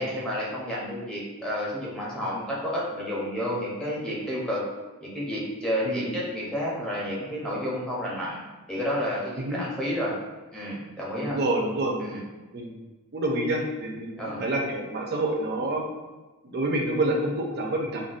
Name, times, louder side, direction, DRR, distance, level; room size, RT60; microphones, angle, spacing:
voice 1, 0.0-4.6 5.0-8.4 8.7-10.2 10.5-11.4 12.0-12.2 14.2-14.4, equal, 5° left, -6 dB, 0.6 m, -30 dB
voice 2, 11.1-12.0 12.5-12.7 13.1-15.8 16.4-18.0, right 1 dB, 50° right, 1 dB, 0.5 m, -28 dB
3.9 x 2.1 x 2.4 m, 1.2 s
head